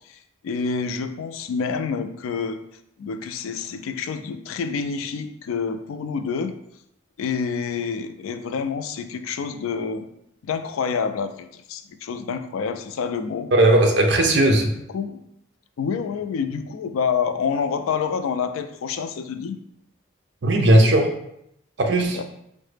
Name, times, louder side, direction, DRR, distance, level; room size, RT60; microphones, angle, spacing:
voice 1, 0.4-2.6 3.0-6.5 7.2-10.1 10.5-13.5 14.3-14.4 14.9-15.2 15.8-19.6, left 6 dB, 90° left, 0.3 m, -27 dB
voice 2, 13.5-14.7 20.4-21.1 21.8-22.2, right 1 dB, 55° right, 0.5 m, -17 dB
4.7 x 2.1 x 3.2 m
head